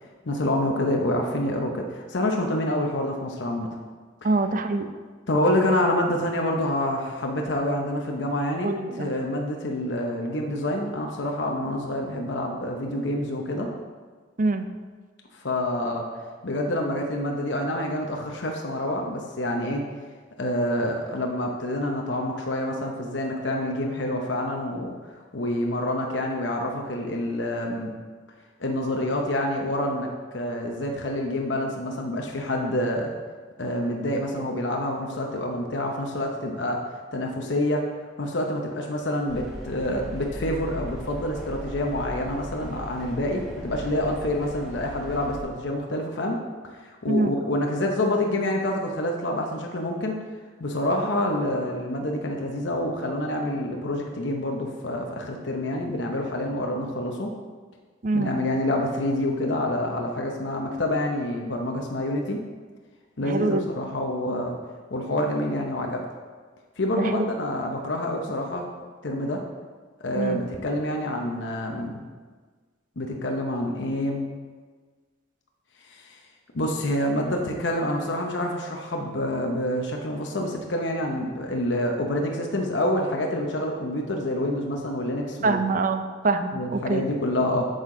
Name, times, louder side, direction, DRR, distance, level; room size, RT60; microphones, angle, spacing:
voice 1, 0.2-3.7 5.3-8.7 9.0-13.7 15.3-16.0 16.4-19.9 20.4-24.9 25.3-27.9 28.6-30.1 30.3-33.1 33.6-36.8 37.1-37.8 38.2-46.4 47.0-50.2 50.6-57.3 58.1-62.4 63.2-64.6 64.9-66.0 66.8-68.6 69.0-69.4 70.0-72.0 73.0-74.3 75.9-76.2 76.5-85.6 86.5-87.7, left 1 dB, 70° left, 1 dB, 0.8 m, -27 dB
voice 2, 4.2-4.9 8.6-9.1 14.4-14.7 47.1-47.3 58.0-58.4 63.2-63.6 66.9-67.3 70.1-70.4 85.4-87.0, right 3 dB, 45° right, 8 dB, 0.5 m, -25 dB
sound 1, 39.3-45.4, equal, ahead, 1.4 m, -38 dB
8.2 x 6.6 x 3.8 m, 1.5 s
head